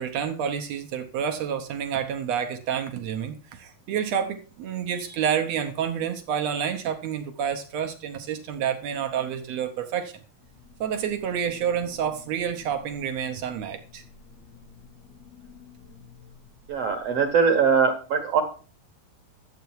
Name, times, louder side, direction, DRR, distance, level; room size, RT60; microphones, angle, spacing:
voice 1, 0.0-10.1 10.8-14.0, right 8 dB, 80° right, 6 dB, 1.5 m, -29 dB
sound 1, 10.4-17.6, left 6 dB, 85° left, 6.3 m, -51 dB
voice 2, 16.7-18.4, right 6 dB, 60° right, 5 dB, 1.6 m, -21 dB
12.0 x 8.0 x 4.7 m, 0.38 s
omnidirectional pair, 4.3 m